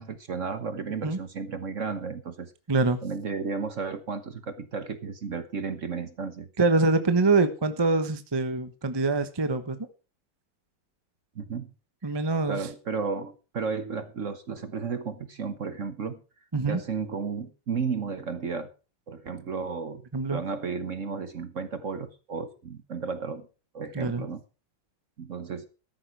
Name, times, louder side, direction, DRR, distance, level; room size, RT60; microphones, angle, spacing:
voice 1, 0.0-2.5 3.0-6.5 11.3-11.7 12.0-12.1 12.5-16.2 16.7-18.7 19.1-20.0 20.3-23.5 23.7-24.4 25.2-25.7, right 5 dB, 45° right, 11 dB, 1.2 m, -33 dB
voice 2, 2.7-3.0 6.6-9.8 12.0-12.7 16.5-16.8 20.1-20.4 23.9-24.2, right 3 dB, 20° right, 10 dB, 0.8 m, -24 dB
13.5 x 11.0 x 4.7 m, 0.33 s
omnidirectional pair, 2.1 m